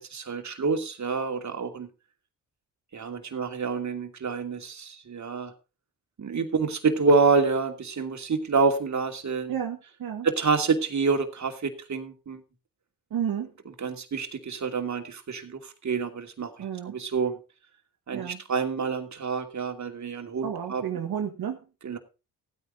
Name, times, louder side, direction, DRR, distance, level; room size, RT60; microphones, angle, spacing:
voice 1, 0.0-1.9 2.9-5.5 6.2-9.5 10.2-12.4 13.8-16.5 16.9-17.3 18.1-20.8 21.8-22.0, right 4 dB, 50° right, 5 dB, 2.7 m, -27 dB
voice 2, 9.5-10.3 13.1-13.5 16.6-17.0 18.1-18.4 20.4-21.6, right 9 dB, 65° right, 2 dB, 1.7 m, -31 dB
15.5 x 9.5 x 3.9 m, 0.31 s
supercardioid pair, 60°, 37 cm